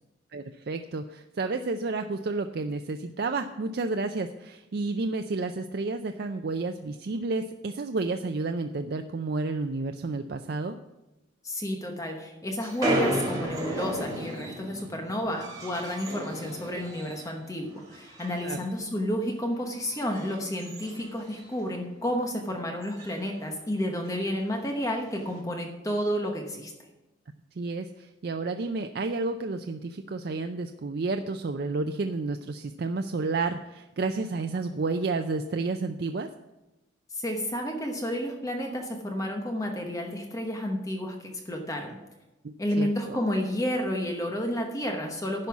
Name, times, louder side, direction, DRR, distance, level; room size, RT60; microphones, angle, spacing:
voice 1, 0.3-10.8 18.4-18.6 27.6-36.3 42.4-43.2, right 3 dB, 55° right, 7 dB, 0.4 m, -31 dB
voice 2, 11.4-26.7 37.1-42.0 42.6-45.5, equal, 15° left, 2 dB, 1.0 m, -31 dB
sound 1, 12.6-17.4 17.7-18.7 19.0-19.3 19.8-21.7 22.1-22.2 22.4-22.5 22.8-23.2 24.1-24.2 25.0-25.4, equal, 20° right, 2.1 m, -34 dB
10.5 x 5.4 x 7.2 m, 1.0 s
head